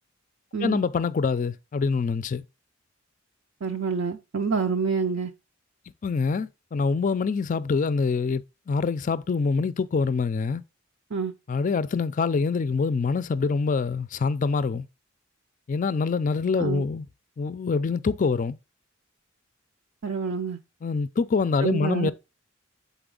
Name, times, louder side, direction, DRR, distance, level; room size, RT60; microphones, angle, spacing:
voice 1, 0.6-2.4 6.0-10.6 11.5-14.9 15.7-17.1 17.4-18.6 20.8-22.1, left 4 dB, 40° left, 0.4 m, -25 dB
voice 2, 3.6-5.3 11.1-11.3 16.6-16.9 20.0-20.6 21.6-22.1, right 5 dB, 65° right, 0.6 m, -27 dB
6.9 x 4.1 x 3.7 m
head